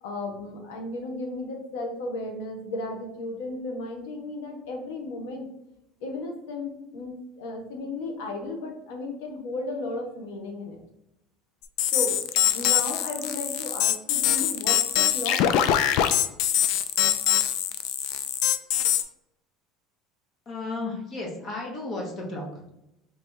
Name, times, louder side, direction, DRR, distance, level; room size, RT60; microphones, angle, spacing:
voice 1, 0.0-5.5 6.0-10.8 11.9-12.2 12.5-15.4, left 2 dB, 85° left, 2 dB, 1.1 m, -34 dB
sound 1, 11.8-19.0, left 11 dB, 55° left, 0.3 m, -23 dB
voice 2, 20.5-22.7, left 2 dB, 30° left, 0 dB, 1.1 m, -34 dB
3.3 x 3.2 x 4.5 m, 0.86 s
cardioid pair, 165°, 0 cm